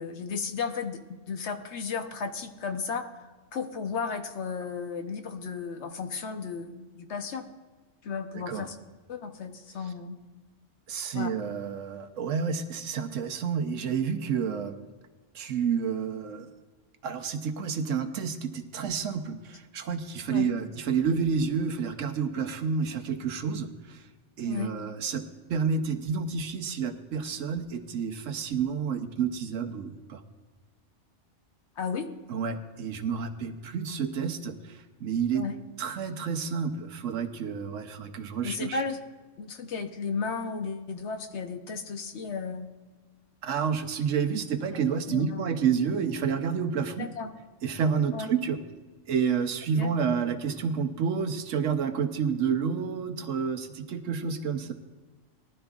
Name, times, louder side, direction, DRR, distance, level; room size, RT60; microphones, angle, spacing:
voice 1, 0.0-3.1 3.5-7.5 8.0-8.8 9.1-10.2 11.1-11.3 20.3-20.5 24.5-24.7 31.8-32.1 35.3-35.5 38.4-39.0 39.4-42.7 44.7-44.8 45.1-45.5 47.0-47.3 48.1-48.3 49.8-49.9, left 5 dB, 65° left, 7 dB, 1.2 m, -34 dB
voice 2, 8.3-8.7 10.9-14.8 15.3-16.5 17.0-24.0 24.4-25.2 25.5-30.2 32.3-35.4 35.8-38.8 43.4-47.1 47.6-48.6 49.1-54.7, right 6 dB, 80° right, 7 dB, 1.2 m, -29 dB
19.0 x 11.5 x 2.4 m, 1.3 s
omnidirectional pair, 1.3 m